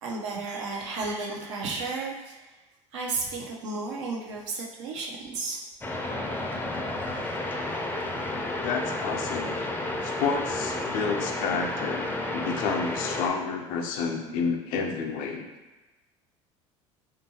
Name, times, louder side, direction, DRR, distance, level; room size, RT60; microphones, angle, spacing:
voice 1, 0.0-2.5 2.9-5.6 7.9-8.0, right 3 dB, 80° right, -1 dB, 0.6 m, -33 dB
sound 1, 5.8-13.3, left 2 dB, 15° left, 0.4 m, -31 dB
voice 2, 8.6-9.5 10.0-15.5, left 5 dB, 65° left, 3 dB, 0.5 m, -30 dB
2.7 x 2.5 x 2.7 m, 1.1 s
hypercardioid pair, 75°, 15 cm